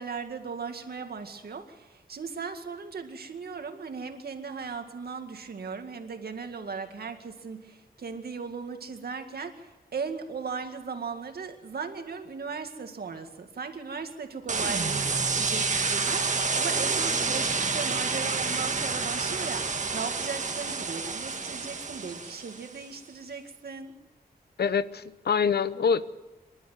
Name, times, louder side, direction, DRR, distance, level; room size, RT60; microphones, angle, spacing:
voice 1, 0.0-23.9, right 5 dB, 75° right, 6 dB, 2.1 m, -37 dB
sound 1, 14.5-22.7, right 4 dB, 50° right, 1.7 m, -29 dB
voice 2, 24.6-26.0, left 6 dB, 80° left, 15 dB, 0.8 m, -25 dB
26.5 x 12.0 x 9.4 m, 1.1 s
wide cardioid pair, 155°, 16 cm